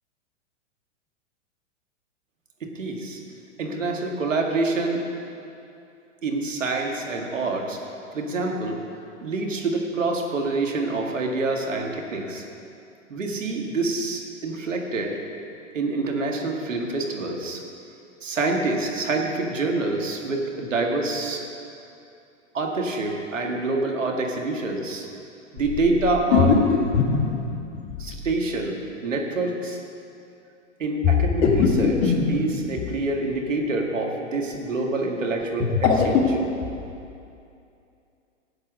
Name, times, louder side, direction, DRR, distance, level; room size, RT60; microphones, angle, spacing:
voice 1, 2.6-3.2 3.6-5.1 6.2-7.8 8.1-8.8 9.2-12.4 13.1-15.2 15.7-17.6 18.2-21.4 22.5-25.1 25.5-26.6 28.0-29.8 30.8-36.4, right 3 dB, 90° right, 1 dB, 2.0 m, -26 dB
sound 1, 25.6-28.4 31.0-33.1 35.4-36.9, left 5 dB, 40° left, 2.2 m, -22 dB
14.0 x 8.5 x 6.3 m, 2.6 s
hypercardioid pair, 115°, 37 cm